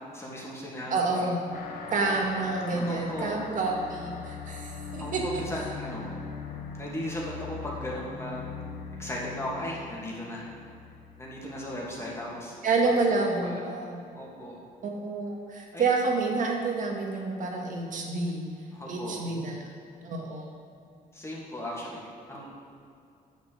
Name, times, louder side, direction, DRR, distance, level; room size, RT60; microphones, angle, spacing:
voice 1, 0.1-1.3 2.1-2.2 2.7-3.4 5.0-6.1 6.7-8.5 9.0-10.4 11.2-12.5 13.1-13.6 14.1-14.6 15.7-15.9 18.7-19.2 21.1-22.5, left 1 dB, 15° left, -4 dB, 2.6 m, -37 dB
voice 2, 0.9-1.4 1.9-5.4 12.6-14.0 14.8-18.4 18.9-19.7 20.0-20.5, right 3 dB, 55° right, 1 dB, 1.8 m, -28 dB
sound 1, 1.5-12.5, left 5 dB, 75° left, 1.3 m, -41 dB
9.3 x 6.6 x 6.7 m, 2.5 s
cardioid pair, 115°, 16 cm